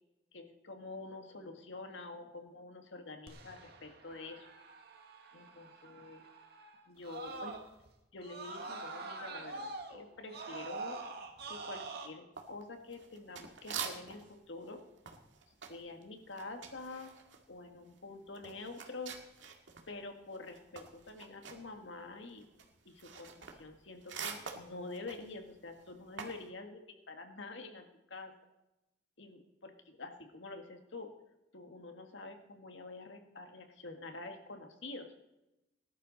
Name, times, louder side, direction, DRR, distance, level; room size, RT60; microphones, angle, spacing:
voice 1, 0.3-4.5 5.3-6.3 6.9-7.6 8.1-11.0 11.4-14.8 15.7-17.1 17.5-19.2 19.9-22.5 22.9-28.3 29.2-31.1 31.5-35.1, left 3 dB, 80° left, 5 dB, 1.8 m, -47 dB
Screaming, 3.3-7.9 8.2-12.1, right 3 dB, 60° right, 1.9 m, -45 dB
sound 1, 12.4-14.4 14.6-19.9 20.2-26.5, right 6 dB, 80° right, 2.0 m, -46 dB
19.5 x 11.5 x 4.1 m, 0.95 s
head